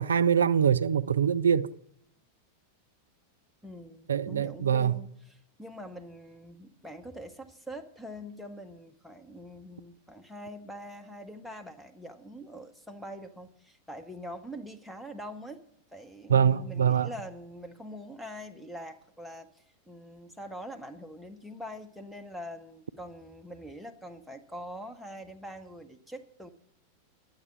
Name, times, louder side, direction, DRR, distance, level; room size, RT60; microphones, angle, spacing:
voice 1, 0.0-1.7 4.1-5.0 16.3-17.1, right 8 dB, 70° right, 0.4 m, -24 dB
voice 2, 3.6-15.6 15.9-26.5, equal, ahead, 0.8 m, -44 dB
11.0 x 8.0 x 7.2 m
figure-of-eight pair, 90°, 0 cm